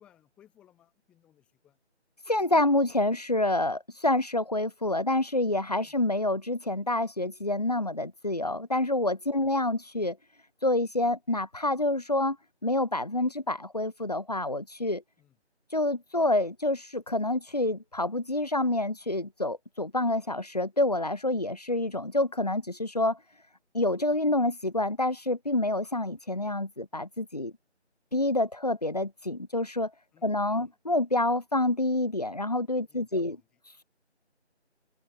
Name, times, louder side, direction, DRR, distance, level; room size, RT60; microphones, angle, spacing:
voice 1, 0.0-1.8 5.8-6.0 9.4-9.5 15.2-15.4 30.1-30.8 32.8-33.6, left 11 dB, 5° left, 5.6 m, -63 dB
voice 2, 2.3-10.2 10.6-12.4 12.6-15.0 15.7-23.2 23.7-27.5 28.1-29.9 30.2-33.4, left 1 dB, 35° left, 1.1 m, -27 dB
open air
figure-of-eight pair, 170°, 35 cm